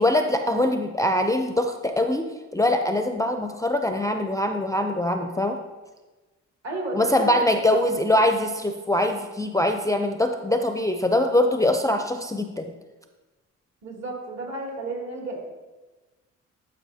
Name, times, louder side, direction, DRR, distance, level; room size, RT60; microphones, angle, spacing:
voice 1, 0.0-5.6 6.9-12.7, left 1 dB, 10° left, 6 dB, 0.4 m, -23 dB
voice 2, 6.6-7.4 13.8-15.4, right 2 dB, 60° right, -2 dB, 2.7 m, -32 dB
12.0 x 5.4 x 2.8 m, 1.2 s
cardioid pair, 90°, 30 cm